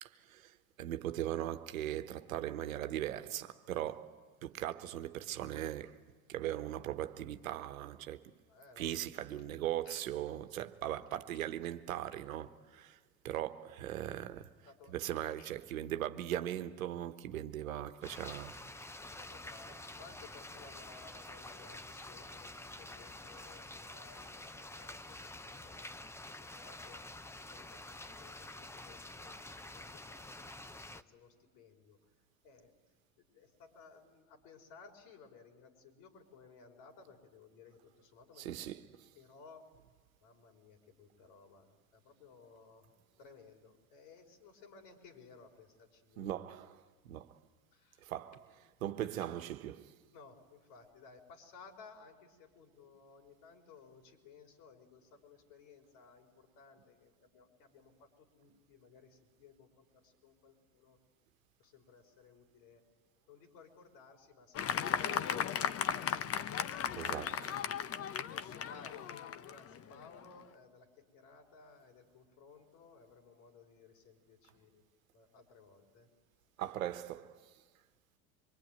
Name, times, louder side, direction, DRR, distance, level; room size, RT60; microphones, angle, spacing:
voice 1, 0.0-6.0 6.3-8.3 8.8-13.0 13.2-14.5 14.9-18.5 38.4-39.1 46.2-47.4 48.0-48.5 48.8-49.9 66.9-67.6 76.6-77.5, right 12 dB, 80° right, 1.3 m, -39 dB
voice 2, 8.5-9.0 9.8-10.0 14.7-15.0 15.4-15.5 19.0-25.9 26.3-27.1 27.4-32.0 32.4-32.7 33.2-38.7 39.2-39.7 40.2-42.9 43.2-46.3 47.7-48.1 50.1-61.0 61.6-62.8 63.3-66.2 68.7-74.8 75.1-76.1, left 5 dB, 65° left, 5.5 m, -59 dB
sound 1, 18.0-31.0, left 2 dB, 5° left, 0.8 m, -48 dB
Fireworks, 64.5-70.3, left 8 dB, 35° left, 1.1 m, -36 dB
25.5 x 23.5 x 9.3 m
hypercardioid pair, 85°, 41 cm